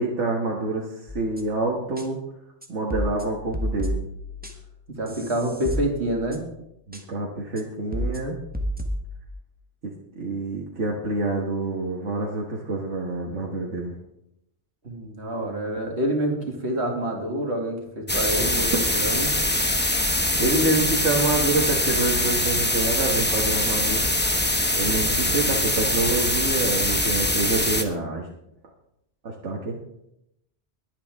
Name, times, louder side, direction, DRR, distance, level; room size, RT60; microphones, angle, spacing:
voice 1, 0.0-2.2 2.7-4.0 6.9-8.4 9.8-13.9 20.4-24.1 24.7-28.3 29.2-29.8, right 2 dB, 85° right, -1 dB, 1.8 m, -27 dB
sound 1, 1.1-1.6 2.0-2.1 2.6-4.8 5.1-6.6 6.9-7.0 7.6-7.7 7.9-9.3, equal, 10° right, 1.4 m, -31 dB
voice 2, 5.0-6.4 14.8-19.3, right 1 dB, 70° right, 1 dB, 2.6 m, -27 dB
sound 2, 18.1-27.8, left 1 dB, 10° left, 1.0 m, -23 dB
21.5 x 8.6 x 3.6 m, 0.81 s
omnidirectional pair, 1.2 m